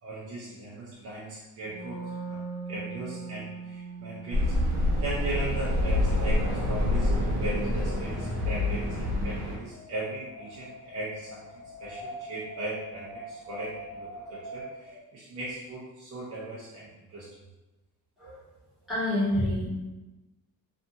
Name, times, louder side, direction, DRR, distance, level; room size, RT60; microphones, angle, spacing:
voice 1, 0.0-4.5 5.0-11.5 11.8-17.3, right 2 dB, 40° right, -7 dB, 0.5 m, -38 dB
Wind instrument woodwind instrument, 1.6-7.3, right 5 dB, 20° right, 0.9 m, -41 dB
sound 1, 4.3-9.6, left 1 dB, 60° right, 0.9 m, -27 dB
Wind, 7.3-15.0, equal, 45° left, 1.3 m, -44 dB
voice 2, 18.9-19.7, left 1 dB, ahead, -12 dB, 1.4 m, -27 dB
2.7 x 2.5 x 2.4 m, 1.1 s
cardioid pair, 170°, 37 cm